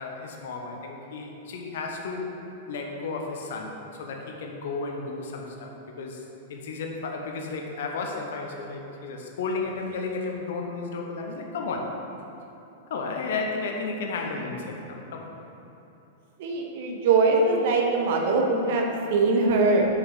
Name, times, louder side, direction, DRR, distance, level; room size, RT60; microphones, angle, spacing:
voice 1, 0.0-2.3 2.7-6.2 6.5-12.0 12.9-15.3, left 4 dB, 60° left, 2 dB, 0.9 m, -33 dB
voice 2, 16.4-19.9, right 3 dB, 55° right, 1 dB, 1.0 m, -22 dB
6.3 x 5.9 x 4.7 m, 2.9 s
figure-of-eight pair, 95°, 0 cm